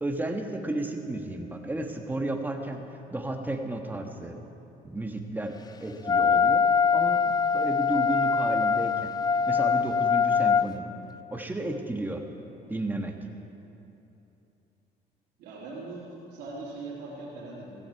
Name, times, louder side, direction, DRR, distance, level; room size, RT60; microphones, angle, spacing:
voice 1, 0.0-2.9 3.1-4.4 4.8-9.1 9.5-10.9 11.3-12.2 12.7-13.1, right 2 dB, 10° right, 3 dB, 1.4 m, -33 dB
Wind instrument woodwind instrument, 6.1-10.7, left 6 dB, 25° left, 0.3 m, -23 dB
voice 2, 15.4-17.8, right 3 dB, 85° right, -7 dB, 3.2 m, -40 dB
15.5 x 15.5 x 4.7 m, 2.9 s
cardioid pair, 110°, 17 cm